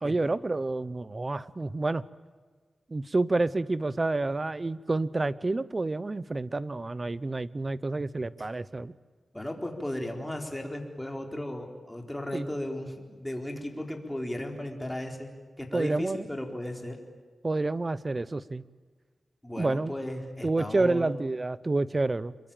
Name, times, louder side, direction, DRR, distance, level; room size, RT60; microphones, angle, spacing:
voice 1, 0.0-2.0 2.9-8.9 12.3-12.5 15.7-16.3 17.4-18.6 19.6-19.9 20.4-22.3, right 2 dB, 30° right, 18 dB, 0.8 m, -29 dB
voice 2, 9.3-17.0 19.4-21.1, left 1 dB, 10° left, 3 dB, 4.1 m, -36 dB
26.5 x 22.5 x 9.0 m, 1.5 s
wide cardioid pair, 100°, 0 cm